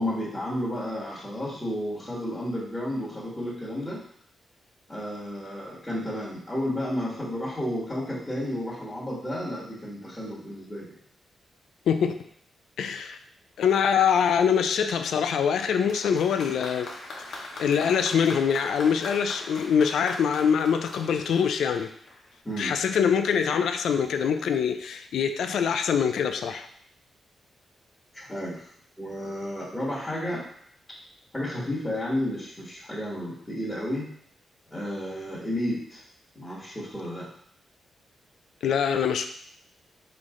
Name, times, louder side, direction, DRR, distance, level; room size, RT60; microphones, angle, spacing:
voice 1, 0.0-4.0 4.9-10.9 22.4-22.7 28.1-28.7 29.0-30.4 31.3-34.1 34.7-36.0 36.3-37.3, left 1 dB, 10° left, -9 dB, 1.4 m, -32 dB
voice 2, 11.9-12.2 12.8-13.2 13.6-16.9 17.3-21.9 22.6-26.7 38.6-39.2, left 7 dB, 90° left, 8 dB, 0.3 m, -24 dB
Applause, 15.9-22.3 23.2-23.3, left 2 dB, 70° left, 0.9 m, -41 dB
4.0 x 3.2 x 3.6 m, 0.64 s
cardioid pair, 100°, 0 cm